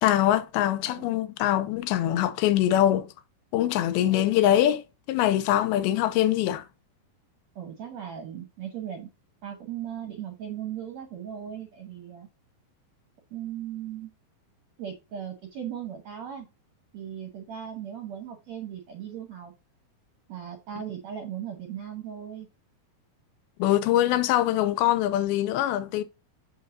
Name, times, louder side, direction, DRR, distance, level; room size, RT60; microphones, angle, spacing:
voice 1, 0.0-3.1 3.5-4.8 5.1-6.6 23.6-26.0, left 12 dB, 85° left, 2.5 m, -23 dB
voice 2, 4.0-4.4 7.5-9.1 9.4-12.3 13.3-14.1 14.8-16.5 16.9-19.5 20.3-22.5, right 9 dB, 70° right, 1.6 m, -38 dB
7.0 x 5.5 x 2.7 m
omnidirectional pair, 4.4 m